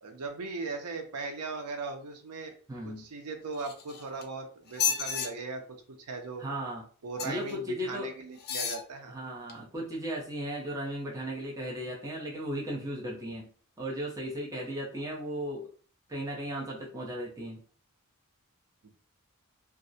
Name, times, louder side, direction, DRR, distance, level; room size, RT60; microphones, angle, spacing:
voice 1, 0.0-2.5 2.8-5.6 6.0-6.4 7.0-9.1 18.8-18.9, right 3 dB, 80° right, 5 dB, 0.6 m, -38 dB
voice 2, 2.7-3.1 6.4-6.8 7.2-8.1 9.1-13.5 13.8-15.7 16.1-17.6, equal, 15° right, -4 dB, 0.6 m, -36 dB
sound 1, 3.5-4.2 4.7-5.3 7.2-7.5 8.4-8.8 9.5-9.6, left 7 dB, 45° left, 0.4 m, -32 dB
2.3 x 2.0 x 2.6 m, 0.42 s
head